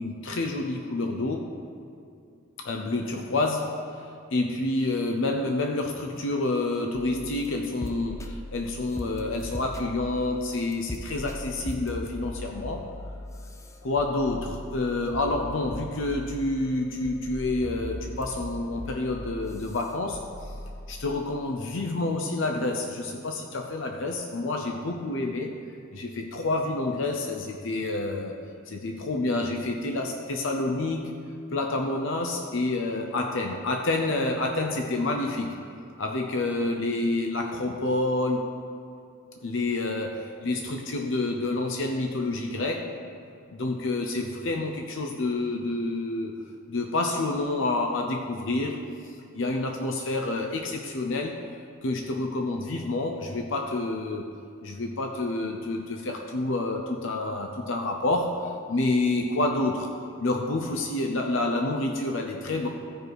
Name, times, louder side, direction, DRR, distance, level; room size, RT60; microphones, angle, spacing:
voice 1, 0.0-1.5 2.6-4.0 4.3-12.9 13.8-20.2 20.9-25.5 25.9-28.4 28.7-31.1 31.5-35.6 36.0-38.5 39.4-42.9 43.5-46.4 46.7-51.4 51.8-54.3 54.6-59.9 60.2-62.7, left 2 dB, 60° left, 3 dB, 0.6 m, -28 dB
sound 1, 6.9-21.2, left 1 dB, 15° left, 0.5 m, -40 dB
14.5 x 5.4 x 4.7 m, 2.5 s
head